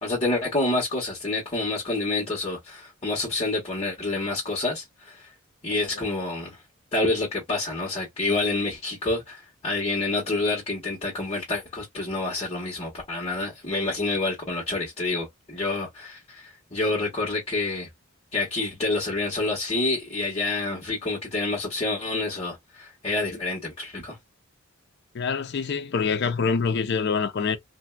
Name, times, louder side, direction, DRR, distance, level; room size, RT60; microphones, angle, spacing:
voice 1, 0.0-5.3 5.6-6.6 6.9-17.9 18.3-24.2, left 2 dB, 30° left, 1.2 m, -28 dB
voice 2, 25.1-27.6, left 5 dB, 50° left, 0.5 m, -25 dB
3.2 x 2.6 x 2.2 m
head